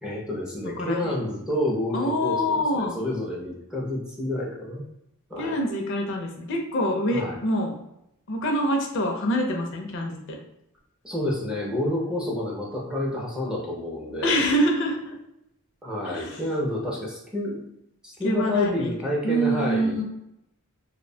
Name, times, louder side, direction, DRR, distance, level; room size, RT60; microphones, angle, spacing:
voice 1, 0.0-4.8 5.3-5.6 7.1-7.4 11.0-14.3 15.8-17.6 18.0-20.0, left 1 dB, 5° right, -3 dB, 0.4 m, -29 dB
voice 2, 0.8-1.2 1.9-3.0 5.4-7.7 8.3-10.4 14.2-15.1 16.0-16.4 18.2-19.0 19.2-20.0, equal, 55° left, 2 dB, 0.4 m, -25 dB
2.5 x 2.1 x 2.6 m, 0.82 s
head